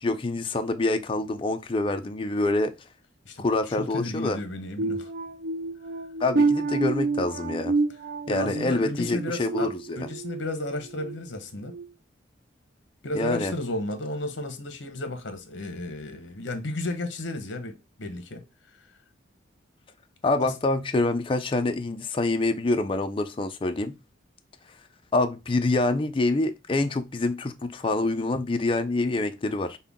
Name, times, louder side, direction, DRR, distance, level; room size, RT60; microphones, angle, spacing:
voice 1, 0.0-2.7 3.4-4.4 6.2-7.7 8.3-10.0 13.1-13.5 20.2-23.9 25.1-29.8, left 2 dB, 25° left, 0.4 m, -26 dB
voice 2, 3.2-5.1 8.3-11.7 13.0-18.4 20.4-20.5, left 2 dB, 65° left, 0.9 m, -33 dB
sound 1, 4.8-10.4 10.9-11.2 11.7-11.9, right 3 dB, 45° right, 0.4 m, -28 dB
5.6 x 2.2 x 3.5 m
head